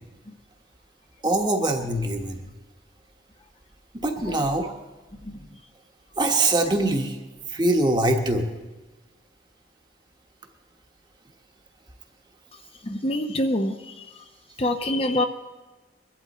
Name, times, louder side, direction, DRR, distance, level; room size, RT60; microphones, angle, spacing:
voice 1, 1.2-2.5 3.9-4.8 6.2-7.2 7.5-8.5, right 2 dB, 25° right, 4 dB, 1.3 m, -23 dB
voice 2, 12.8-13.9 14.6-15.2, left 1 dB, 30° left, 6 dB, 0.7 m, -25 dB
22.5 x 12.0 x 4.2 m, 1.2 s
head